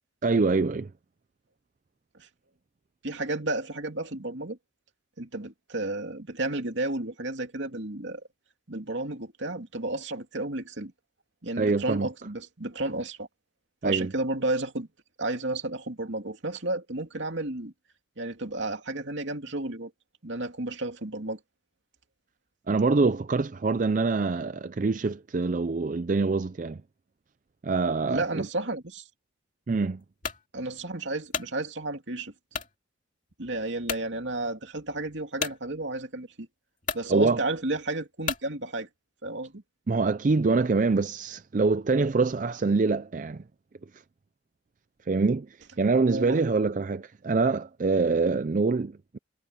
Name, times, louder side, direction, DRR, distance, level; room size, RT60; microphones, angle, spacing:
voice 1, 0.2-0.9 11.6-12.1 13.8-14.1 22.7-26.8 27.6-28.5 29.7-30.0 37.1-37.4 39.9-43.4 43.9-44.0 45.0-49.2, right 3 dB, 40° right, 0.4 m, -25 dB
voice 2, 3.0-4.6 5.2-8.2 8.7-10.9 11.4-13.3 13.8-14.9 15.2-17.7 18.2-19.9 20.2-21.4 28.1-29.0 30.5-32.3 33.4-36.5 36.9-38.9 39.2-39.6 46.1-46.4, right 2 dB, 65° right, 2.6 m, -32 dB
sound 1, 30.2-30.4 31.0-31.5 32.5-32.7 33.3-33.4 33.8-34.1 35.4-35.6 36.4-36.5 36.8-37.1 38.2-38.5, left 6 dB, 40° left, 2.5 m, -32 dB
head